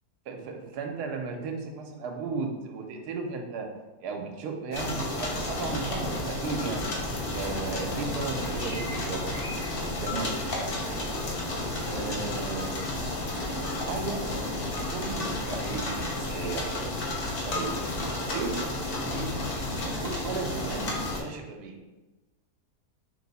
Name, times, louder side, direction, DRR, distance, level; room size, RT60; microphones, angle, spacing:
voice 1, 0.3-3.7 4.0-6.8 7.3-9.3 10.0-10.3 11.9-12.7 13.9-14.3 14.9-16.7 17.5-17.7 18.2-18.8 19.0-19.3 19.7-21.8, right 4 dB, 80° right, 4 dB, 1.1 m, -35 dB
sound 1, 4.7-21.2, left 1 dB, 50° left, 0.7 m, -32 dB
3.4 x 3.0 x 4.0 m, 1.1 s
omnidirectional pair, 1.7 m